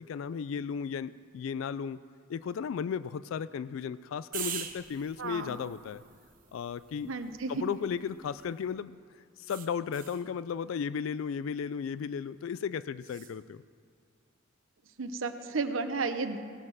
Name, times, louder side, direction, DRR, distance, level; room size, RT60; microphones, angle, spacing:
voice 1, 0.0-2.0 2.3-6.0 6.5-7.1 7.5-9.0 9.4-13.6, left 7 dB, 80° left, 16 dB, 0.3 m, -35 dB
sound 1, 4.3-8.7 9.5-10.3 13.0-13.4, right 9 dB, 45° right, 1.0 m, -44 dB
voice 2, 5.2-5.5 7.0-7.6 15.0-16.4, right 4 dB, 80° right, 8 dB, 0.9 m, -33 dB
17.0 x 7.5 x 6.2 m, 2.2 s
head